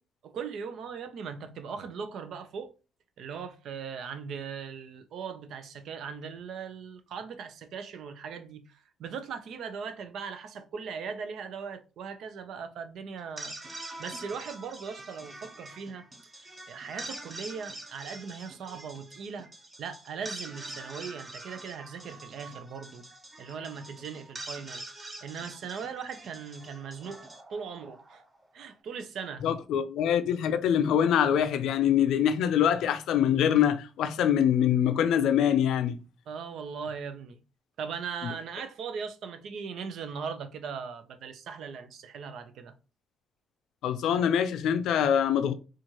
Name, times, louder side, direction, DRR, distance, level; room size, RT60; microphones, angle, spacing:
voice 1, 0.2-2.7 3.2-13.5 14.0-16.1 16.7-19.5 19.8-23.0 23.4-24.8 25.2-27.2 27.5-28.2 28.5-29.5 36.3-37.4 37.8-42.7, right 6 dB, 70° right, 0.6 m, -39 dB
sound 1, 13.2-28.4, right 2 dB, 25° right, 0.8 m, -45 dB
voice 2, 29.4-36.0 43.8-45.5, left 9 dB, 80° left, 0.4 m, -24 dB
4.3 x 2.5 x 2.9 m
cardioid pair, 90°, 0 cm